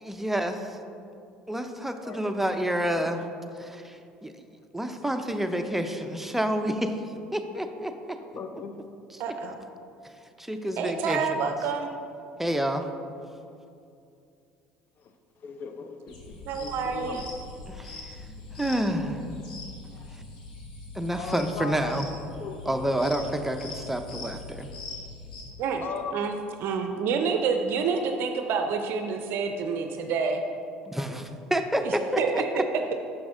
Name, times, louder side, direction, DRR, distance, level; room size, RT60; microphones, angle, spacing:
voice 1, 0.0-0.8 1.5-3.2 3.6-4.3 4.7-6.9 7.3-8.2 10.4-11.2 12.4-12.9 17.7-18.2 18.6-19.2 20.9-22.1 22.7-24.7 30.9-32.6, right 1 dB, 5° right, 6 dB, 0.6 m, -29 dB
voice 2, 2.0-2.4 3.0-3.3 8.3-8.8 15.0-17.2 18.3-18.4 19.9-20.1 21.1-22.0 22.4-22.6 25.8-26.2, left 5 dB, 50° left, 6 dB, 0.5 m, -39 dB
voice 3, 9.2-9.6 10.8-11.9 16.5-17.3 25.6-25.8 26.1-26.3 26.6-30.4 31.8-32.6, right 5 dB, 60° right, 5 dB, 0.5 m, -28 dB
sound 1, 16.1-25.4, left 3 dB, 85° left, 1.1 m, -42 dB
6.0 x 6.0 x 3.7 m, 2.5 s
hypercardioid pair, 70°, 4 cm